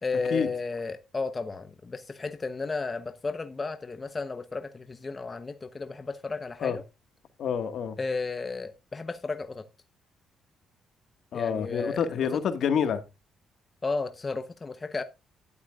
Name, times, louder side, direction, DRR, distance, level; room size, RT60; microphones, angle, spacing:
voice 1, 0.0-6.8 8.0-9.6 11.3-12.4 13.8-15.0, left 4 dB, 30° left, 0.9 m, -33 dB
voice 2, 7.4-8.0 11.3-13.0, left 7 dB, 65° left, 1.8 m, -27 dB
12.0 x 11.0 x 2.5 m
cardioid pair, 90°, 0 cm